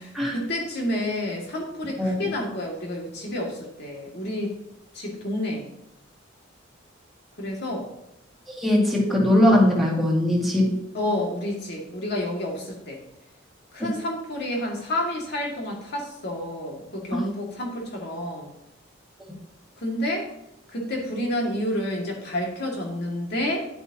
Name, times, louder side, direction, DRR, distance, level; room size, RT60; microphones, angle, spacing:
voice 1, 0.0-4.6 4.9-5.7 7.4-7.9 10.9-13.0 13.7-18.5 19.8-20.3 20.7-23.6, left 1 dB, 60° left, -1 dB, 2.3 m, -29 dB
voice 2, 8.6-10.8 17.1-17.2, left 1 dB, ahead, -4 dB, 2.3 m, -20 dB
10.5 x 8.7 x 2.9 m, 0.83 s
head